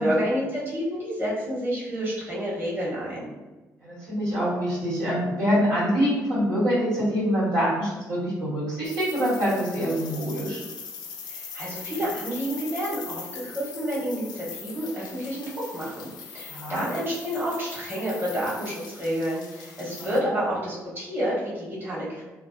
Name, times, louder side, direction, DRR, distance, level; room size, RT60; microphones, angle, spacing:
voice 1, 0.0-3.3 11.2-22.2, equal, 30° right, -7 dB, 1.2 m, -29 dB
voice 2, 3.8-10.6 16.4-16.8 20.0-20.1, equal, 85° right, -10 dB, 1.3 m, -25 dB
sound 1, 8.8-20.2, left 6 dB, 70° left, 0.4 m, -41 dB
2.6 x 2.1 x 2.5 m, 1.2 s
supercardioid pair, 55°, 7 cm